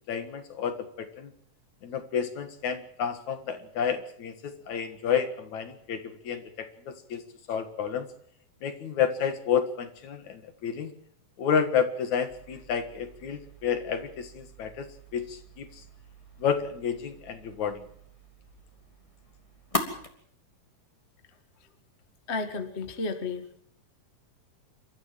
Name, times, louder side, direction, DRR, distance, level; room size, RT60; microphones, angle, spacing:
voice 1, 0.1-1.3 1.8-7.2 7.5-8.1 8.6-10.9 11.4-14.9 15.1-15.7 16.4-17.8, left 7 dB, 60° left, 9 dB, 2.9 m, -30 dB
sound 1, 12.3-20.1, left 1 dB, 10° left, 2.5 m, -41 dB
voice 2, 22.3-23.5, left 3 dB, 30° left, 8 dB, 1.2 m, -32 dB
28.0 x 13.5 x 7.5 m, 0.64 s
omnidirectional pair, 3.9 m